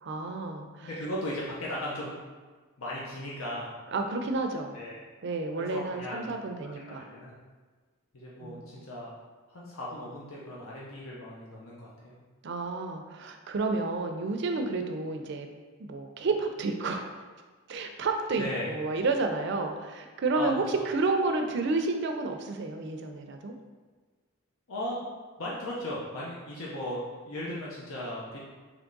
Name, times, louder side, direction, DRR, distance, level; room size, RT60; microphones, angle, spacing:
voice 1, 0.0-0.9 3.9-4.8 5.2-7.1 8.4-8.7 12.4-15.5 15.8-17.2 17.7-23.5 27.5-27.6, right 3 dB, 55° right, 5 dB, 0.4 m, -31 dB
voice 2, 0.8-2.1 2.8-3.7 4.7-5.0 5.6-6.3 6.6-6.7 7.0-7.3 8.1-9.1 9.5-12.2 18.4-18.7 20.4-20.8 24.7-25.0 25.4-28.4, left 1 dB, 85° left, -5 dB, 0.7 m, -37 dB
3.5 x 3.2 x 3.8 m, 1.4 s
head